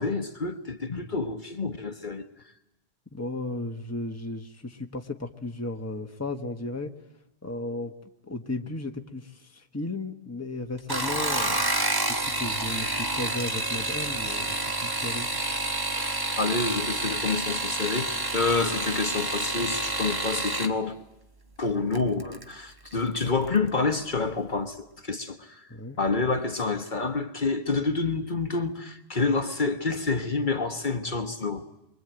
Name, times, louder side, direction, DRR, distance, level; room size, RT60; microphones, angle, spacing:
voice 1, 0.0-2.2 16.0-21.0 21.6-25.7 26.0-31.6, left 3 dB, 50° left, 1.3 m, -28 dB
voice 2, 3.1-6.9 7.4-7.9 8.2-11.6 12.1-15.3 25.7-26.0, left 2 dB, 15° left, 1.3 m, -35 dB
sound 1, 10.8-20.7 21.9-22.4 22.9-23.3 23.6-23.7, right 2 dB, 20° right, 1.2 m, -29 dB
26.0 x 24.0 x 9.0 m
omnidirectional pair, 1.1 m